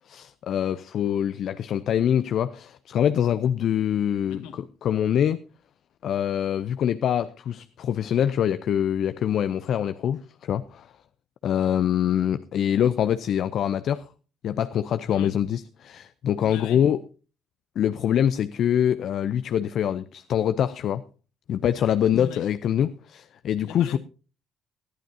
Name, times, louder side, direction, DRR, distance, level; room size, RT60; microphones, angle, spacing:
voice 1, 0.1-5.4 6.0-10.9 11.4-14.0 14.4-17.0 17.8-21.0 21.5-24.0, left 9 dB, 60° left, 0.6 m, -24 dB
voice 2, 4.2-4.6 15.1-15.4 16.5-16.8 22.2-22.5 23.6-24.0, left 7 dB, 75° left, 1.9 m, -39 dB
19.5 x 12.0 x 2.8 m
hypercardioid pair, 55°, 0 cm